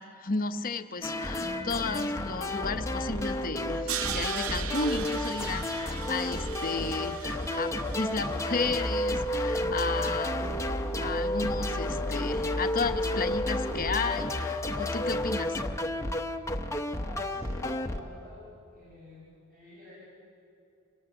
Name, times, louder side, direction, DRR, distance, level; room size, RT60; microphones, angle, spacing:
voice 1, 0.0-10.5 11.0-15.6, left 4 dB, 40° left, 9 dB, 0.9 m, -33 dB
sound 1, 1.0-18.0, left 1 dB, 15° left, 0.9 m, -31 dB
Crash cymbal, 3.9-8.9, right 9 dB, 70° right, 0.8 m, -38 dB
voice 2, 16.9-18.4 18.7-19.9, equal, 40° right, -7 dB, 6.2 m, -47 dB
26.0 x 18.5 x 8.0 m, 2.6 s
head